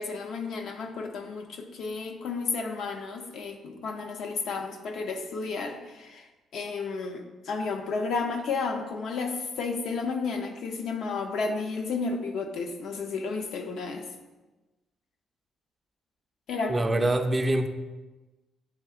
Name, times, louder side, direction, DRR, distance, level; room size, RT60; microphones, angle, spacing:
voice 1, 0.0-14.1 16.5-17.1, left 4 dB, 75° left, 4 dB, 0.5 m, -32 dB
voice 2, 16.7-17.7, right 1 dB, 25° right, 7 dB, 0.3 m, -24 dB
7.8 x 2.7 x 2.4 m, 1.2 s
cardioid pair, 90°, 0 cm